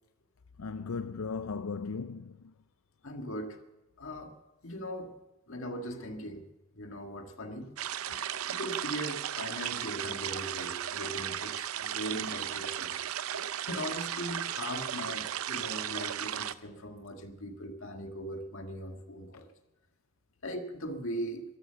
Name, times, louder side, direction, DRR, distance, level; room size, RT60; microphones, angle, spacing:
voice 1, 0.6-2.5 8.1-8.2, left 4 dB, 90° left, 0.5 m, -37 dB
voice 2, 3.0-3.6 4.0-4.3 4.6-5.1 5.5-6.4 6.8-7.7 8.5-12.9 13.3-19.5 20.4-21.4, equal, 70° left, 1.8 m, -39 dB
sound 1, 7.8-16.5, right 10 dB, 85° right, 0.6 m, -35 dB
13.5 x 13.5 x 6.8 m
head